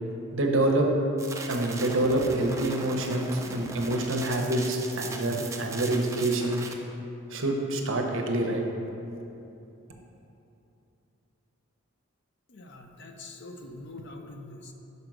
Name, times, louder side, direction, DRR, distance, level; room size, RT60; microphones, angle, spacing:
voice 1, 0.3-0.9 1.5-6.6 7.3-8.6, right 1 dB, 60° right, 2 dB, 0.8 m, -26 dB
sound 1, 1.2-6.7, right 3 dB, 15° right, 0.3 m, -39 dB
voice 2, 12.5-14.7, left 2 dB, 55° left, 4 dB, 0.6 m, -44 dB
5.5 x 5.1 x 6.0 m, 2.8 s
head